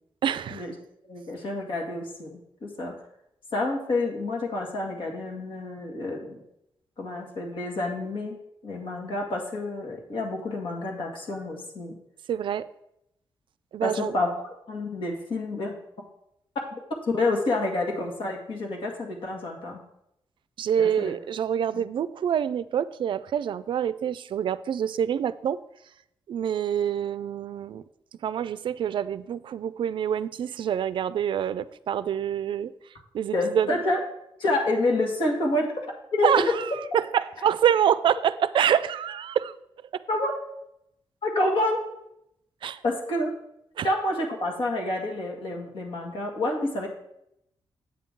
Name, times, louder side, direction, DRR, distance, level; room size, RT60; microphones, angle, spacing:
voice 1, 0.2-0.6 12.3-12.6 13.7-14.1 20.6-25.6 26.3-27.8 28.2-32.7 33.1-33.7 36.2-36.5 36.9-39.5 42.6-42.8 43.8-43.9, right 9 dB, 65° right, 15 dB, 0.4 m, -26 dB
voice 2, 1.0-2.9 3.5-6.4 7.0-8.4 8.6-11.9 13.8-14.3 14.7-15.7 17.1-19.8 20.8-21.1 21.7-21.9 33.3-34.0 34.4-35.9 36.1-36.6 40.1-40.4 41.2-41.8 42.8-43.3 43.8-46.9, left 2 dB, 70° left, 0 dB, 2.0 m, -28 dB
8.4 x 7.6 x 3.7 m, 0.79 s
wide cardioid pair, 135°, 9 cm